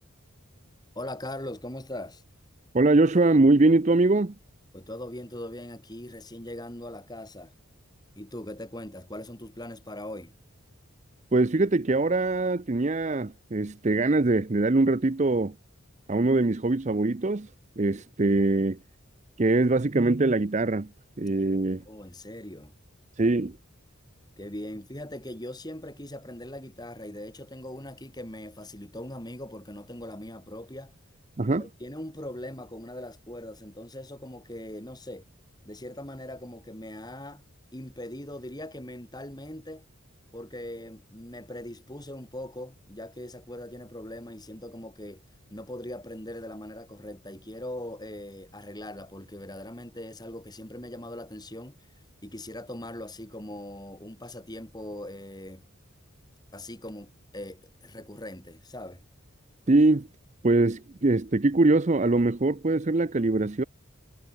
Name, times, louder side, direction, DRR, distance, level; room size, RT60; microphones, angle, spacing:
voice 1, 1.0-2.2 4.7-7.5 8.2-10.3 21.9-22.8 24.4-31.0 31.6-35.3 35.6-37.5 37.7-39.9 40.3-45.2 45.5-51.9 52.2-55.6 56.5-59.0, left 1 dB, 20° left, 3.6 m, -40 dB
voice 2, 2.7-4.3 11.3-15.5 16.1-17.5 17.8-18.8 19.4-20.9 21.2-21.8 23.2-23.6 31.4-31.6 59.7-60.1 60.4-63.6, right 2 dB, 35° right, 0.6 m, -22 dB
head